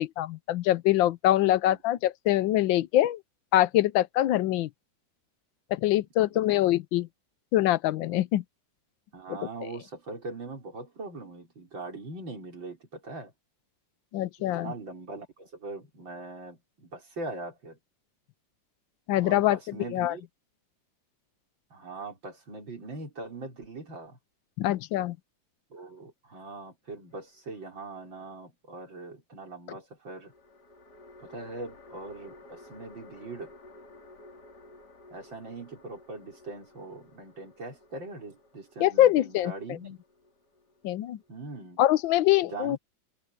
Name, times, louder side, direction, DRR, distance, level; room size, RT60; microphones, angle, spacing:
voice 1, 0.0-3.2 3.5-4.7 5.7-7.1 7.5-8.4 14.1-14.7 19.1-20.1 24.6-25.2 38.8-39.8 40.8-41.2 41.8-42.8, left 14 dB, 80° left, 1.4 m, -24 dB
voice 2, 1.4-1.8 6.2-6.7 9.1-13.3 14.5-17.8 19.2-20.2 21.7-24.2 25.7-30.3 31.2-33.5 35.1-40.0 41.3-41.8 42.4-42.8, right 3 dB, 75° right, 5.8 m, -41 dB
sound 1, 27.1-28.0 30.2-41.6, left 2 dB, 55° left, 3.5 m, -54 dB
omnidirectional pair, 2.1 m